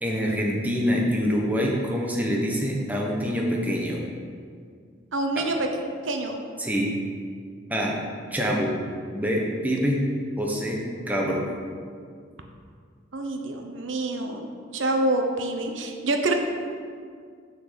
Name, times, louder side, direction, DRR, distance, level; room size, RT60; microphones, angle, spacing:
voice 1, 0.0-4.0 5.4-5.5 6.6-6.9 7.7-8.0 8.3-8.7 9.1-10.0 10.4-11.4, equal, 10° right, -2 dB, 1.1 m, -25 dB
voice 2, 5.1-5.7 6.0-6.4 13.1-14.5 14.7-16.3, right 2 dB, 80° right, 4 dB, 0.9 m, -26 dB
6.7 x 6.1 x 6.9 m, 2.1 s
head